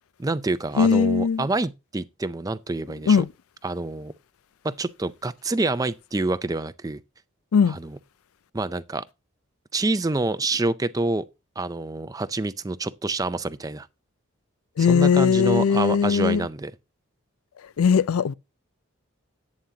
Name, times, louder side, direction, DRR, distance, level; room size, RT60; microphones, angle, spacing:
voice 1, 0.2-3.2 3.6-4.1 4.6-7.0 7.7-8.0 8.5-9.0 9.7-11.2 11.6-13.9 14.8-16.7, right 2 dB, 15° right, 0.4 m, -27 dB
voice 2, 0.8-1.4 3.1-3.3 7.5-7.8 14.8-16.5 17.8-18.3, left 6 dB, 80° left, 0.4 m, -19 dB
11.5 x 8.6 x 2.8 m
head